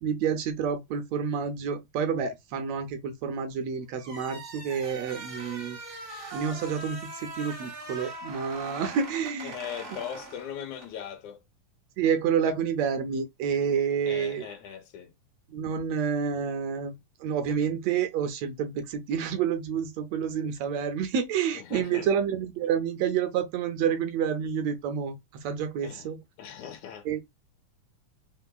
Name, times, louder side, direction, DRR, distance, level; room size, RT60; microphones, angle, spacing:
voice 1, 0.0-9.6 12.0-14.5 15.5-26.2 27.0-27.2, right 7 dB, 75° right, 1.6 m, -29 dB
sound 1, 4.0-11.0, right 2 dB, 55° right, 0.7 m, -41 dB
voice 2, 9.4-11.4 14.0-15.1 21.5-22.1 25.8-26.1 26.4-27.1, left 9 dB, 70° left, 2.2 m, -39 dB
4.5 x 3.8 x 2.3 m
omnidirectional pair, 3.6 m